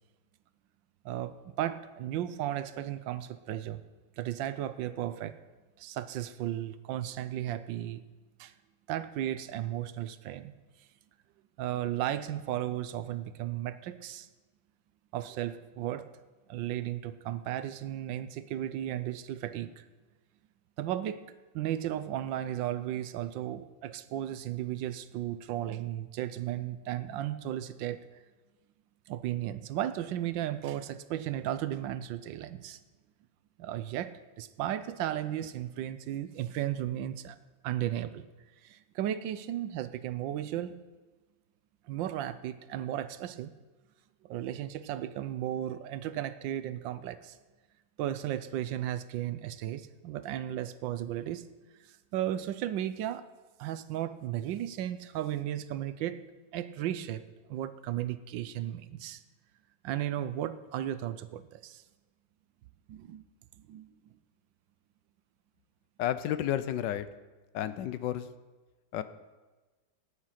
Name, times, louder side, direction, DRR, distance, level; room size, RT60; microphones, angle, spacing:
voice 1, 1.0-3.8 4.2-5.4 5.8-8.0 8.4-8.5 8.9-10.5 11.6-14.3 15.1-16.1 16.5-19.8 20.8-21.2 21.5-28.1 29.1-32.8 33.6-37.4 37.6-38.3 38.6-40.8 41.9-43.5 44.2-47.4 48.0-51.5 51.8-53.2 53.6-56.2 56.5-57.2 57.5-59.2 59.8-61.8 62.9-63.2 63.7-63.9, right 12 dB, 75° right, 13 dB, 1.3 m, -35 dB
voice 2, 66.0-67.1 67.5-68.3 68.9-69.0, left 11 dB, 70° left, 13 dB, 1.2 m, -31 dB
14.0 x 10.5 x 5.8 m, 1.2 s
omnidirectional pair, 2.1 m